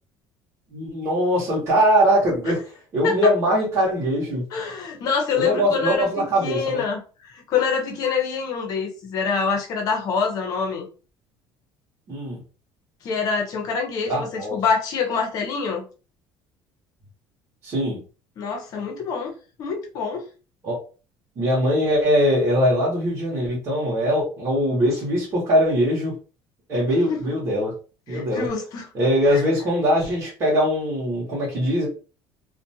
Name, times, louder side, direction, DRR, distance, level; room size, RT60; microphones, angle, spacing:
voice 1, 0.7-2.6 2.9-4.4 5.4-6.8 12.1-12.4 14.1-14.6 17.6-18.0 20.6-20.8 21.4-26.1 26.7-27.7 28.1-28.5 28.9-31.9, equal, 30° right, 1.0 m, -21 dB
voice 2, 4.5-10.9 13.0-15.9 18.4-19.3 19.6-20.2 27.1-27.2 28.1-28.9 29.3-29.4, left 5 dB, 45° left, 0.7 m, -26 dB
2.4 x 2.2 x 2.7 m
cardioid pair, 170°, 9 cm